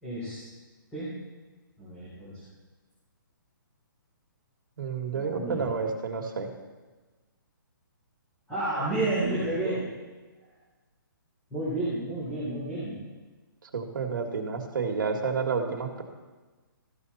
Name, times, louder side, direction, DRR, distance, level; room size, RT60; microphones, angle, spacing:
voice 1, 0.0-0.4 0.9-1.1 1.8-2.3 5.1-5.6 8.5-9.8 11.5-13.0, right 2 dB, 10° left, -11 dB, 3.4 m, -30 dB
voice 2, 4.8-6.5 13.6-16.0, right 5 dB, 65° right, 3 dB, 1.8 m, -30 dB
14.0 x 6.9 x 4.1 m, 1.3 s
hypercardioid pair, 165°, 12 cm